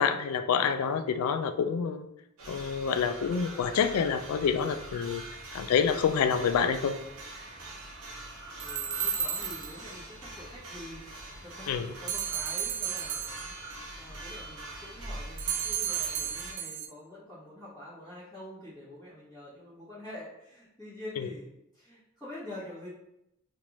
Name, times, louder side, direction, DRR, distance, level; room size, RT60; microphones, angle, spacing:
voice 1, 0.0-2.1 2.5-5.2 5.5-7.0 11.7-11.9 21.2-21.3, left 6 dB, 70° left, 11 dB, 0.3 m, -27 dB
sound 1, 2.4-16.5, right 1 dB, 75° right, 0.7 m, -44 dB
voice 2, 8.6-11.1 11.4-22.9, left 1 dB, 5° left, -15 dB, 1.1 m, -46 dB
sound 2, 8.6-9.9 12.1-13.7 15.4-16.9, right 8 dB, 35° right, 0.3 m, -33 dB
3.1 x 2.5 x 3.0 m, 0.83 s
head